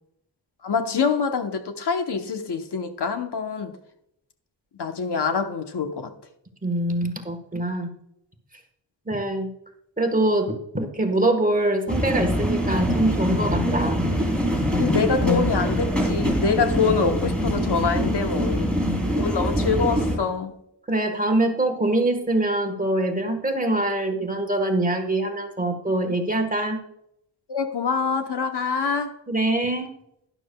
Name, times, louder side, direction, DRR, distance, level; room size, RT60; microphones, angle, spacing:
voice 1, 0.6-3.7 4.8-6.1 14.7-18.8 19.1-20.6 27.5-29.1, left 5 dB, 65° left, 1.0 m, -25 dB
voice 2, 6.6-7.9 9.1-9.5 10.0-14.1 18.7-19.0 20.9-26.8 29.3-29.9, right 1 dB, 20° right, 1.3 m, -24 dB
sound 1, 11.9-20.2, equal, ahead, 3.0 m, -24 dB
12.0 x 11.0 x 2.3 m
wide cardioid pair, 125°, 44 cm